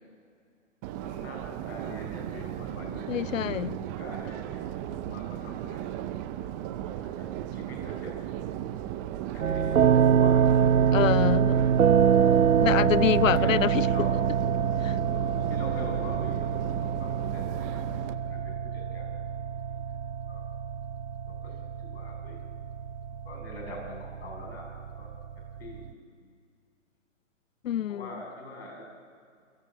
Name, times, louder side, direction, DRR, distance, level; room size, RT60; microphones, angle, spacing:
Subway metro underground, 0.8-18.1, right 11 dB, 15° right, 0.5 m, -36 dB
voice 1, 1.0-6.2 6.5-8.1 8.5-9.0 9.3-11.0 12.1-12.4 13.2-14.2 14.9-16.5 16.8-19.1 20.2-20.4 21.3-22.4 23.2-25.1 25.6-26.0 26.2-26.3 27.9-28.8, left 1 dB, 50° left, 6.7 m, -44 dB
voice 2, 3.1-3.8 10.9-11.6 12.6-13.9 14.8-15.0 27.6-28.1, left 11 dB, 80° left, 0.5 m, -26 dB
sound 1, 9.4-25.9, right 8 dB, 85° right, 0.7 m, -25 dB
28.5 x 16.5 x 7.2 m
hypercardioid pair, 135°, 39 cm